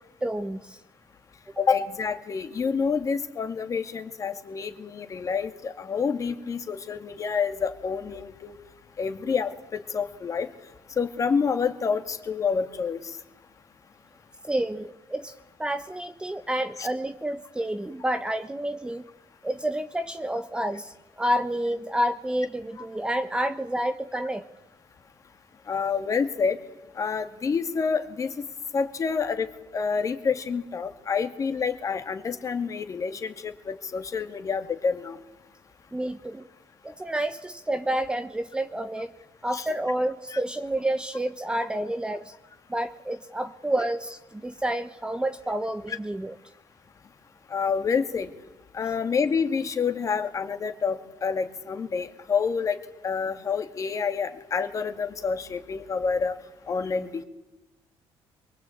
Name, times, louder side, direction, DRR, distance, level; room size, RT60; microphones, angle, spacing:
voice 1, 0.2-0.8 14.4-19.0 19.4-24.4 35.9-36.4 36.8-39.1 39.4-42.3 42.7-46.3, right 1 dB, 10° right, 9 dB, 1.0 m, -29 dB
voice 2, 1.6-8.6 9.0-10.5 11.0-13.1 16.8-16.9 25.7-26.6 27.0-28.3 28.7-29.5 29.7-35.2 39.5-39.7 40.3-40.4 45.9-46.0 47.5-48.3 48.7-52.8 53.0-56.4 56.7-57.2, left 5 dB, 35° left, 8 dB, 2.2 m, -28 dB
23.0 x 22.5 x 8.6 m, 0.99 s
cardioid pair, 135°, 10 cm